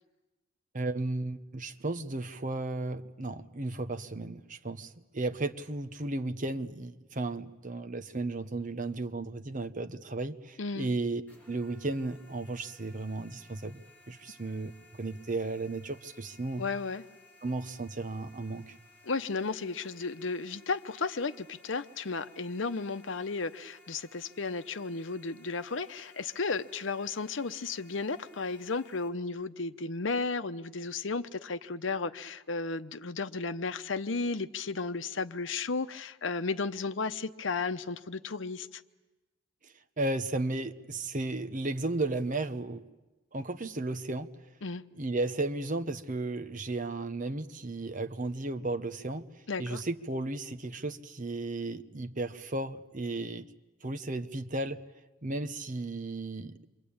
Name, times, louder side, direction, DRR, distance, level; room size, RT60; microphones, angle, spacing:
voice 1, 0.7-11.2 11.5-14.7 15.0-16.7 17.4-18.8 40.0-42.8 43.3-44.3 45.0-49.3 49.6-53.5 53.8-54.8 55.2-56.7, right 2 dB, 45° right, 9 dB, 1.1 m, -34 dB
voice 2, 10.6-10.9 16.6-17.0 19.0-38.8 44.6-44.8 49.5-49.8, left 4 dB, 80° left, 12 dB, 0.9 m, -34 dB
sound 1, 11.3-29.1, left 2 dB, 10° left, 5.5 m, -59 dB
28.0 x 24.5 x 8.8 m, 1.1 s
head